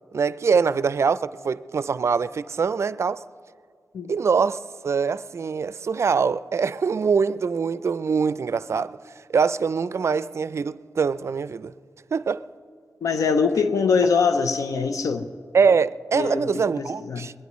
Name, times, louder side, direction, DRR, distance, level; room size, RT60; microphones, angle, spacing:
voice 1, 0.1-3.2 4.1-9.0 9.3-11.7 12.1-12.4 15.5-17.3, right 5 dB, 55° right, 0.4 m, -23 dB
voice 2, 13.0-15.3 16.1-16.5 16.8-17.3, left 5 dB, 90° left, 0.7 m, -23 dB
21.5 x 21.5 x 3.1 m
wide cardioid pair, 80°, 6 cm